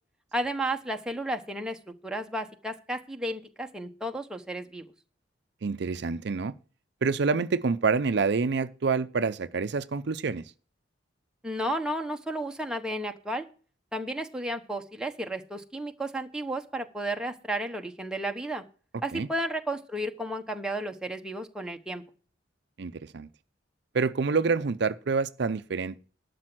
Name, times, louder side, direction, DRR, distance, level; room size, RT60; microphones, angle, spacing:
voice 1, 0.3-4.8 11.4-13.5 13.9-18.6 19.0-22.0, right 1 dB, 5° right, 1.0 m, -33 dB
voice 2, 5.6-6.5 7.0-10.4 19.1-19.3 22.8-23.3 23.9-26.0, right 4 dB, 65° right, 0.5 m, -27 dB
12.0 x 6.8 x 6.1 m
head